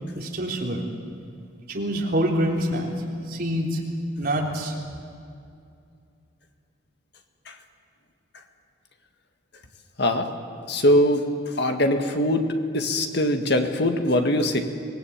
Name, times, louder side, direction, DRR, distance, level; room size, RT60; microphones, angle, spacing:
voice 1, 0.1-0.8 1.7-2.9 3.3-3.8 4.2-4.7, equal, 50° right, -1 dB, 3.7 m, -25 dB
voice 2, 10.7-11.3 11.6-14.6, left 1 dB, 60° left, 5 dB, 1.9 m, -22 dB
24.5 x 19.5 x 8.8 m, 2.4 s
head